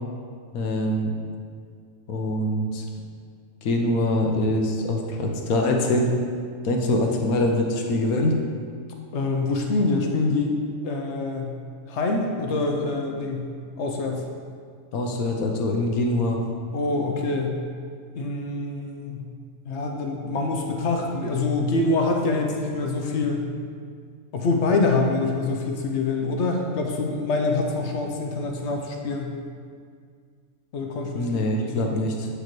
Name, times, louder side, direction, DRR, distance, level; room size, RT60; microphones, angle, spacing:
voice 1, 0.5-1.1 2.1-2.8 3.6-6.1 6.6-8.4 14.9-16.4 31.1-32.3, left 1 dB, 85° left, 2 dB, 1.2 m, -24 dB
voice 2, 9.1-10.5 10.8-11.5 11.9-13.5 13.8-14.2 16.7-17.6 18.1-19.3 19.7-23.4 24.3-29.3 30.7-31.9, left 3 dB, 60° left, 2 dB, 0.9 m, -25 dB
8.0 x 4.9 x 3.0 m, 2.1 s
omnidirectional pair, 1.5 m